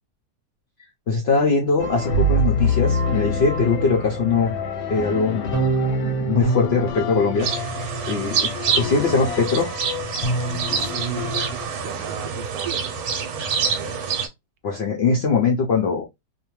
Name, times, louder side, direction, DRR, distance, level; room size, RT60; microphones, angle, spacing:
voice 1, 1.1-4.6 4.9-5.7 6.0-7.7 8.1-9.7 14.6-16.1, left 4 dB, 70° left, 0.6 m, -21 dB
sound 1, 1.8-11.7, left 1 dB, 85° left, 1.3 m, -26 dB
sound 2, 5.5-8.1, right 2 dB, 30° right, 0.3 m, -27 dB
sound 3, 7.4-14.3, right 6 dB, 70° right, 1.0 m, -26 dB
voice 2, 10.4-13.3 13.5-13.8, right 8 dB, 90° right, 1.2 m, -38 dB
2.7 x 2.1 x 2.9 m
omnidirectional pair, 1.8 m